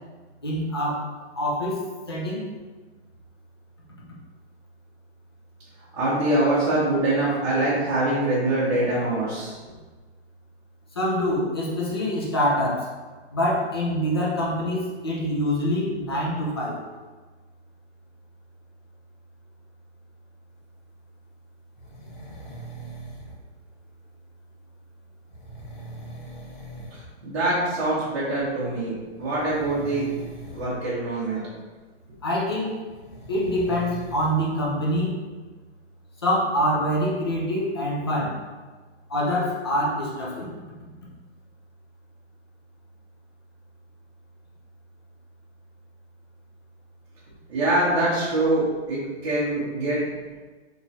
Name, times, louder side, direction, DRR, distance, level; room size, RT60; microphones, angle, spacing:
voice 1, 0.4-1.1 1.4-1.8 2.1-2.5 10.9-12.9 13.3-16.8 32.2-32.8 33.3-35.1 36.2-38.4 39.1-40.5, equal, 25° left, -4 dB, 0.4 m, -25 dB
voice 2, 5.9-9.5 26.9-28.9 29.2-30.1 30.5-31.4 47.5-48.6 48.9-50.0, right 2 dB, 25° right, -11 dB, 0.7 m, -24 dB
sound 1, 21.8-23.4 25.3-27.1 27.4-27.7 29.1-30.8 32.9-34.3, right 1 dB, 45° left, 0.9 m, -41 dB
3.4 x 3.0 x 2.7 m, 1.3 s
hypercardioid pair, 165°, 34 cm